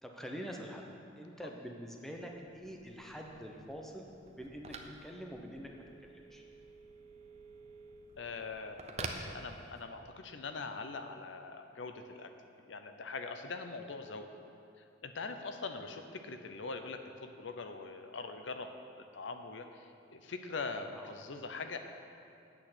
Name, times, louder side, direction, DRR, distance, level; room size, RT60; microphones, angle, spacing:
voice 1, 0.0-4.7 5.0-5.7 6.1-6.4 20.9-21.1, equal, ahead, 1 dB, 0.8 m, -45 dB
Telephone, 2.3-10.1, right 3 dB, 35° right, 0.7 m, -49 dB
voice 2, 8.2-12.3 12.7-14.3 15.0-18.7 19.1-21.8, left 4 dB, 70° left, 7 dB, 0.7 m, -42 dB
8.9 x 6.3 x 7.8 m, 2.5 s
head